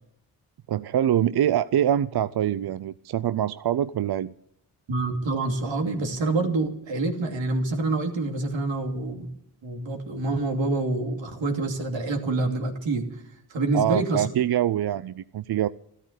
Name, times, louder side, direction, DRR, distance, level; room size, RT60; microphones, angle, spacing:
voice 1, 0.7-4.3 13.7-15.7, right 11 dB, 55° right, 15 dB, 0.6 m, -24 dB
voice 2, 4.9-9.3 9.6-13.1 13.5-14.2, right 2 dB, 80° right, 3 dB, 2.8 m, -27 dB
13.5 x 13.0 x 8.1 m, 0.71 s
cardioid pair, 55°, 45 cm